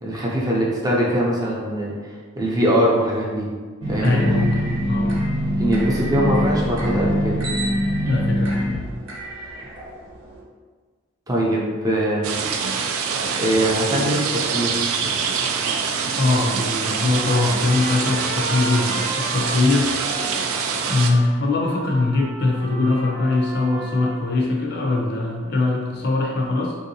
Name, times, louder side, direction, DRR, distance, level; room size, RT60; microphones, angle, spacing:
voice 1, 0.0-3.5 3.9-4.2 5.6-7.4 11.3-12.4 13.4-14.8, right 1 dB, 15° right, -4 dB, 0.4 m, -22 dB
sound 1, 3.8-10.4, equal, 70° right, 0.8 m, -24 dB
voice 2, 4.0-5.2 8.1-8.7 16.2-20.3 20.9-26.8, left 2 dB, 50° left, -1 dB, 0.5 m, -22 dB
sound 2, 12.2-21.1, right 5 dB, 85° right, 0.3 m, -25 dB
Trumpet, 17.0-24.3, right 1 dB, 35° right, 0.8 m, -35 dB
3.4 x 2.7 x 2.7 m, 1.5 s
head